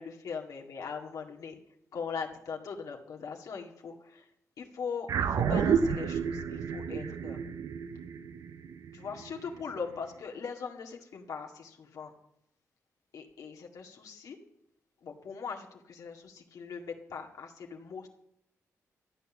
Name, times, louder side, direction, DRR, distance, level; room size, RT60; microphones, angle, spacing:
voice 1, 0.0-1.6 1.9-4.3 4.6-7.4 8.9-12.1 13.1-14.4 15.0-18.1, left 5 dB, 75° left, 1 dB, 2.0 m, -40 dB
sound 1, 5.1-9.7, right 7 dB, 75° right, 0.7 m, -30 dB
13.5 x 8.4 x 7.2 m, 0.75 s
cardioid pair, 70°, 6 cm